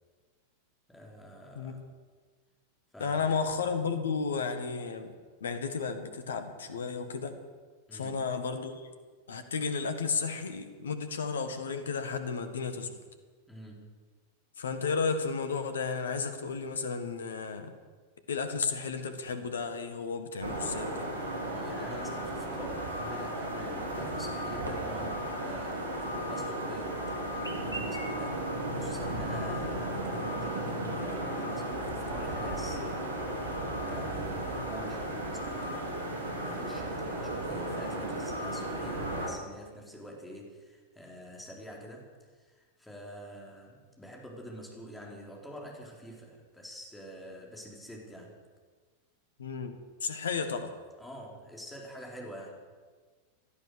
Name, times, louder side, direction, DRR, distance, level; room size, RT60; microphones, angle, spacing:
voice 1, 0.9-1.9 2.9-3.5 7.9-8.2 13.5-13.8 21.5-27.0 27.3-33.0 33.5-42.1 42.3-48.4 51.0-52.6, equal, 5° left, -1 dB, 4.1 m, -46 dB
voice 2, 3.0-5.1 5.4-7.3 7.9-8.9 9.3-13.0 14.6-17.7 18.3-21.1 34.5-34.6 49.4-50.7, left 5 dB, 65° left, 9 dB, 1.7 m, -33 dB
sound 1, 20.4-39.3, right 1 dB, 70° right, 3.4 m, -35 dB
Chirp tweet, 22.7-36.8, right 1 dB, 90° left, 2.2 m, -51 dB
17.0 x 12.5 x 6.7 m, 1.5 s
figure-of-eight pair, 90°, 0 cm